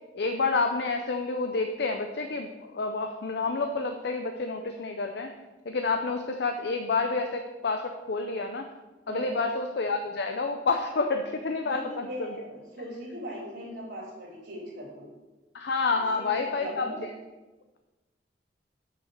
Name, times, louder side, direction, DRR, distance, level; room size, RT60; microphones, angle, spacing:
voice 1, 0.1-5.3 5.6-8.7 9.1-12.4 15.5-16.9, left 3 dB, 65° left, 5 dB, 0.6 m, -29 dB
voice 2, 9.1-9.4 11.6-15.1 16.0-17.0, equal, 80° right, -7 dB, 2.7 m, -39 dB
6.3 x 6.3 x 6.6 m, 1.2 s
head